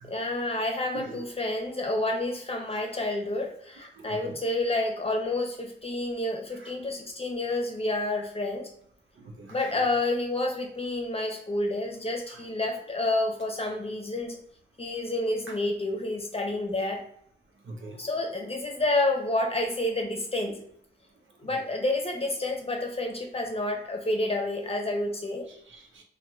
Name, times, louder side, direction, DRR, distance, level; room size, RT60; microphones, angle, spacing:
voice 1, 0.0-8.7 9.5-14.4 14.8-17.0 18.0-20.6 21.4-25.5, left 2 dB, 30° left, 2 dB, 0.8 m, -29 dB
voice 2, 0.9-1.2 3.8-4.4 6.5-6.7 9.2-9.8 12.3-12.5 15.5-15.6 17.6-18.0 21.5-21.6 25.5-26.0, right 2 dB, 85° right, 2 dB, 0.6 m, -44 dB
2.9 x 2.3 x 3.5 m, 0.66 s
cardioid pair, 60°, 20 cm